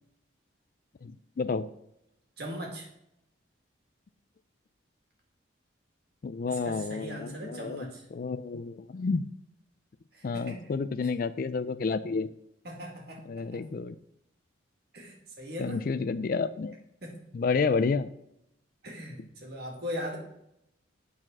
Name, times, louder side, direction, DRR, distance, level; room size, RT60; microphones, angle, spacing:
voice 1, 1.0-1.7 6.2-7.8 8.1-9.3 10.2-12.3 13.3-14.0 15.6-16.8 17.3-18.1, left 4 dB, 45° left, 14 dB, 0.3 m, -30 dB
voice 2, 2.4-2.9 6.5-8.0 10.1-10.6 12.6-13.6 14.9-15.9 17.0-17.1 18.8-20.2, equal, 55° right, 0 dB, 2.2 m, -39 dB
8.8 x 4.2 x 6.0 m, 0.80 s
head